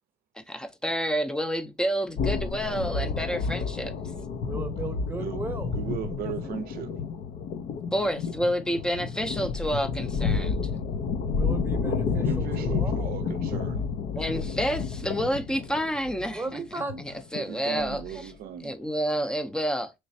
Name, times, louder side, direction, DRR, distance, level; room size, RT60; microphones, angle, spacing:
voice 1, 0.3-3.9 7.9-10.6 14.2-16.6 17.0-18.3 18.6-19.9, equal, 5° left, 0.5 m, -29 dB
sound 1, 2.2-18.3, left 5 dB, 60° left, 0.5 m, -30 dB
voice 2, 4.4-6.3 11.3-13.1 13.5-13.6 16.3-17.1, right 3 dB, 15° right, 0.8 m, -37 dB
voice 3, 5.7-6.9 12.1-13.9 17.3-18.7, right 9 dB, 65° right, 0.5 m, -37 dB
3.2 x 3.1 x 2.7 m
cardioid pair, 110°, 17 cm